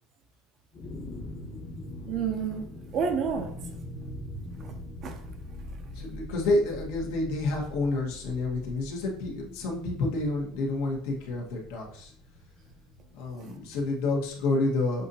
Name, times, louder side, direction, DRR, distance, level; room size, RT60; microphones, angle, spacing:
sound 1, 0.7-14.4, left 1 dB, 25° left, 1.0 m, -43 dB
voice 1, 2.1-3.5 4.6-4.7 5.0-5.2 13.3-13.5, right 6 dB, 35° right, 0.6 m, -30 dB
voice 2, 5.9-12.1 13.1-15.1, left 2 dB, 75° left, 1.4 m, -29 dB
7.0 x 2.7 x 2.7 m
cardioid pair, 165°, 0 cm